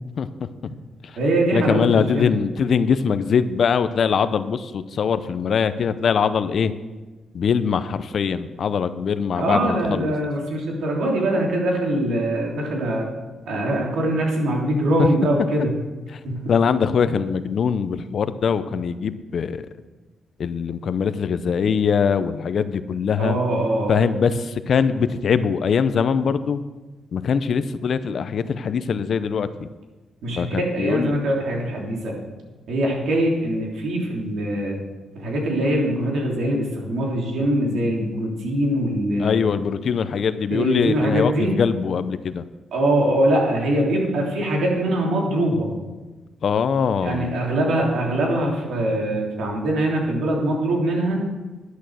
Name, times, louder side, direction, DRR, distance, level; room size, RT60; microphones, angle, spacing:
voice 1, 0.2-0.5 1.0-1.2 1.5-6.7 7.3-10.1 16.1-16.2 16.5-19.6 20.4-23.4 23.9-26.6 27.1-29.7 30.3-31.2 39.2-42.4 46.4-47.3, left 6 dB, 60° left, 12 dB, 0.7 m, -22 dB
voice 2, 1.2-1.8 2.1-2.3 9.4-13.1 13.4-15.7 16.2-16.5 23.2-24.0 30.2-32.2 32.7-34.8 35.1-39.4 40.5-41.5 42.7-45.7 47.0-51.3, right 1 dB, 80° right, -1 dB, 3.3 m, -22 dB
11.5 x 8.2 x 6.5 m, 1.2 s
cardioid pair, 95°, 0 cm